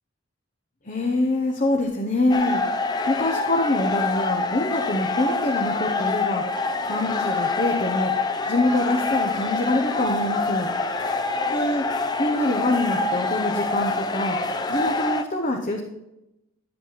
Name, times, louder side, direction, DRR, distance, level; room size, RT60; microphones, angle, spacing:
voice 1, 0.8-6.4 6.9-8.1 8.5-10.7 11.5-14.4 14.7-15.8, left 1 dB, 40° left, 2 dB, 1.0 m, -25 dB
sound 1, 2.3-15.2, left 3 dB, 20° left, 0.5 m, -26 dB
12.0 x 7.8 x 4.1 m, 0.89 s
head